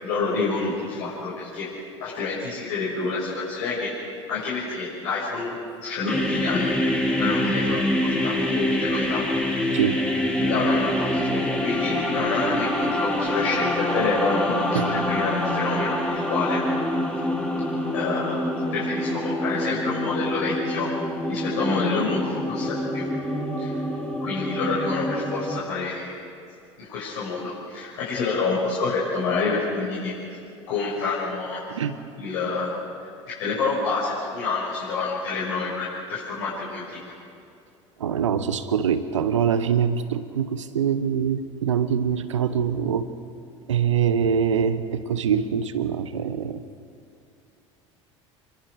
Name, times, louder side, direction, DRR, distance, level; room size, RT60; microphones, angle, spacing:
voice 1, 0.0-1.7 2.0-3.9 4.3-9.2 9.7-9.8 10.4-16.6 17.9-18.4 18.7-20.9 21.3-23.1 23.6-23.8 24.2-26.1 26.9-30.4 30.7-31.6 32.2-32.7 33.4-37.1, left 4 dB, 65° left, -7 dB, 6.0 m, -28 dB
sound 1, 6.1-25.6, left 1 dB, 5° left, 3.2 m, -26 dB
voice 2, 38.0-43.1 43.7-46.6, right 7 dB, 80° right, 13 dB, 1.1 m, -24 dB
27.5 x 23.0 x 4.9 m, 2.6 s
figure-of-eight pair, 70°, 16 cm